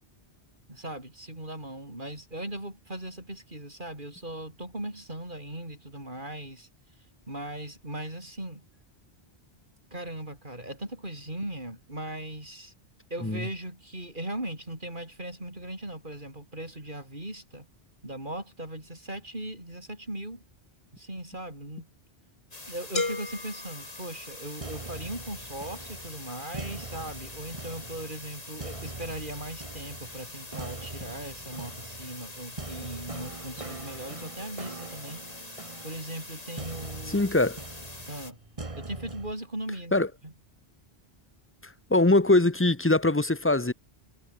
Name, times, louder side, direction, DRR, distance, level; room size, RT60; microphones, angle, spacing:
voice 1, 0.7-6.7 7.3-8.6 9.9-12.7 13.1-17.7 18.0-20.4 20.9-21.9 22.7-35.2 35.8-37.3 38.1-38.4 38.8-40.3, right 1 dB, 50° right, 7.7 m, -38 dB
sound 1, 22.5-38.3, left 2 dB, 35° left, 3.3 m, -44 dB
sound 2, 23.0-24.8, left 3 dB, 65° left, 2.8 m, -35 dB
sound 3, 24.6-39.3, right 3 dB, 30° right, 1.8 m, -43 dB
voice 2, 37.1-37.6 39.9-40.1 41.6-43.7, left 2 dB, 15° left, 0.9 m, -22 dB
omnidirectional pair, 1.1 m